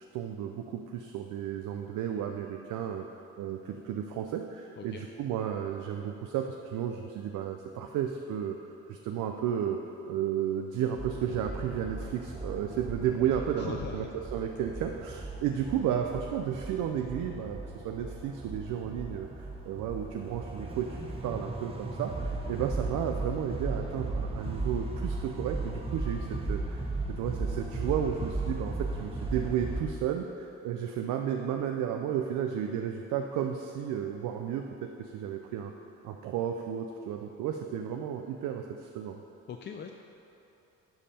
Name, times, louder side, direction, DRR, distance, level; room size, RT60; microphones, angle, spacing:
voice 1, 0.1-3.0 3.4-8.6 8.9-9.8 10.1-14.1 14.3-26.8 27.2-34.6 35.0-35.7 36.0-39.2, right 9 dB, 85° right, 4 dB, 0.5 m, -33 dB
sound 1, 11.0-29.8, right 2 dB, 20° right, 1.0 m, -36 dB
voice 2, 13.6-14.1 39.5-39.9, left 7 dB, 40° left, 3 dB, 0.4 m, -39 dB
10.5 x 5.3 x 4.3 m, 2.8 s
cardioid pair, 90°, 30 cm